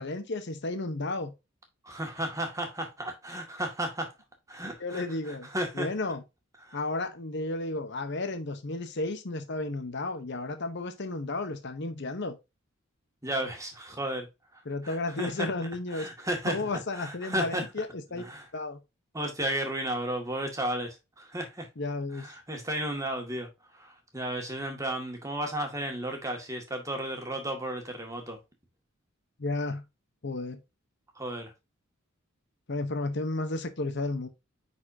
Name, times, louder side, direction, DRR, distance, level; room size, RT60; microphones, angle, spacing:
voice 1, 0.0-1.3 4.8-5.5 5.7-6.2 6.7-12.4 14.7-16.1 16.4-18.2 18.5-18.8 21.8-22.3 29.4-29.8 30.2-30.6 32.7-34.3, left 2 dB, 55° left, 0.9 m, -33 dB
voice 2, 1.8-4.1 4.5-5.9 6.6-6.8 13.2-14.3 14.5-15.5 15.9-16.6 16.9-17.7 18.2-18.5 19.1-21.7 22.1-28.4 31.2-31.5, right 1 dB, 15° right, 1.9 m, -34 dB
9.4 x 4.4 x 2.7 m
head